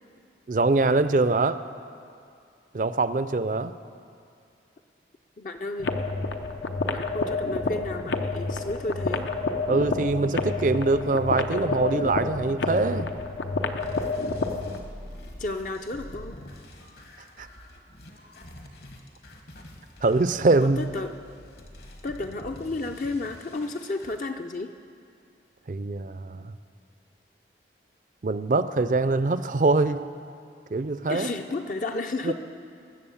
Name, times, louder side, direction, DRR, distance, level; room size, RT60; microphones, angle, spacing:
voice 1, 0.5-1.6 2.7-3.7 9.7-13.1 17.4-17.5 20.0-20.8 25.7-26.5 28.2-30.0 30.7-31.3 32.2-32.3, right 3 dB, 45° right, 13 dB, 0.4 m, -23 dB
voice 2, 5.4-5.9 6.8-9.3 15.4-16.4 20.6-21.1 22.0-24.7 31.1-32.3, left 2 dB, 45° left, 5 dB, 0.5 m, -32 dB
sound 1, 5.8-14.8, left 3 dB, 85° left, 0.8 m, -29 dB
sound 2, 13.8-24.2, left 1 dB, 60° left, 1.5 m, -46 dB
19.5 x 7.4 x 7.1 m, 2.3 s
head